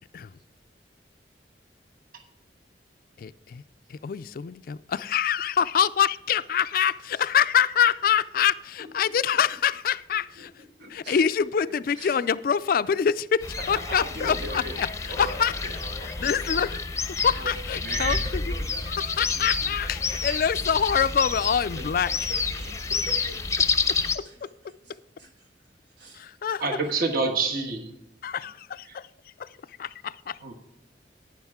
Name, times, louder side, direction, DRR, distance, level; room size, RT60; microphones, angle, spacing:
voice 1, 3.2-3.6 3.9-10.5 10.9-14.9 15.2-15.5 16.2-16.8 17.2-18.5 18.9-22.1 24.1-24.5 26.1-26.6 28.2-30.5, left 7 dB, 50° left, 16 dB, 0.3 m, -25 dB
voice 2, 10.6-11.3 11.7-12.2 13.7-14.8 15.1-16.6 17.9-20.0 20.3-20.4 21.8-23.4 24.2-24.4 24.6-25.5 25.8-26.2, right 1 dB, 80° right, 1 dB, 2.8 m, -42 dB
sound 1, 13.4-24.2, left 4 dB, 15° left, 0.6 m, -29 dB
voice 3, 17.8-18.2 26.6-27.9 30.4-30.5, right 3 dB, 55° right, 4 dB, 1.4 m, -27 dB
11.5 x 9.6 x 3.6 m, 0.81 s
head